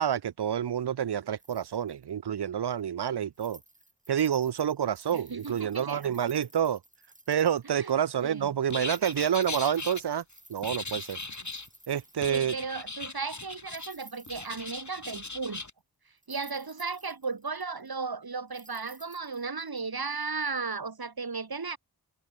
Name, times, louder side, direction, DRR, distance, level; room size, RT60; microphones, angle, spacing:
voice 1, 0.0-3.6 4.1-6.8 7.3-10.2 10.5-11.2 11.9-12.5, right 9 dB, 80° right, 0.8 m, -28 dB
sound 1, 1.4-2.0 2.8-2.9 3.3-8.3 8.8-12.4 13.4-15.1 15.4-15.5 16.2-18.0 18.5-19.8 20.2-20.3, right 1 dB, 20° right, 7.2 m, -55 dB
voice 2, 5.1-6.2 7.7-7.9 8.2-8.5 12.3-15.6 16.3-21.8, right 4 dB, 65° right, 4.5 m, -35 dB
sound 2, 8.7-10.0 10.6-11.7 12.2-13.9 14.3-15.7, left 3 dB, 45° left, 7.2 m, -38 dB
wide cardioid pair, 55°, 39 cm